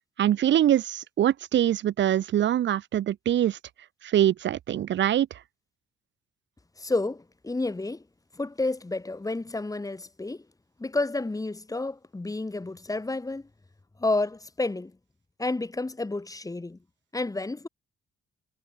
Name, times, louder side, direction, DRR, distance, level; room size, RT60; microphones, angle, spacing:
voice 1, 0.2-3.6 4.0-5.3, right 11 dB, 65° right, 1.4 m, -23 dB
voice 2, 6.8-8.0 8.3-10.5 10.8-13.5 14.0-14.9 15.4-16.8 17.1-17.7, left 2 dB, 15° left, 5.6 m, -30 dB
cardioid pair, 90°, 20 cm